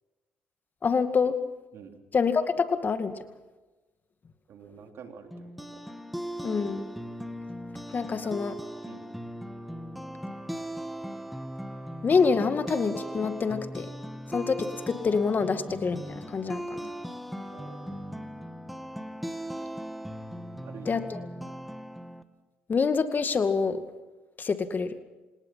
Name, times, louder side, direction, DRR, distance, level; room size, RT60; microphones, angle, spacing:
voice 1, 0.8-1.3 2.1-3.1 6.4-6.9 7.9-8.6 12.0-13.9 14.3-16.8 20.9-21.2 22.7-23.8 24.4-24.9, left 5 dB, 40° left, 9 dB, 2.1 m, -26 dB
voice 2, 4.5-5.8 8.2-8.3 8.8-9.1 17.5-18.0 20.6-21.0, right 6 dB, 65° right, 4 dB, 3.5 m, -47 dB
sound 1, 5.3-22.2, equal, ahead, 2.0 m, -38 dB
28.0 x 18.5 x 5.9 m, 1.2 s
supercardioid pair, 70°, 5 cm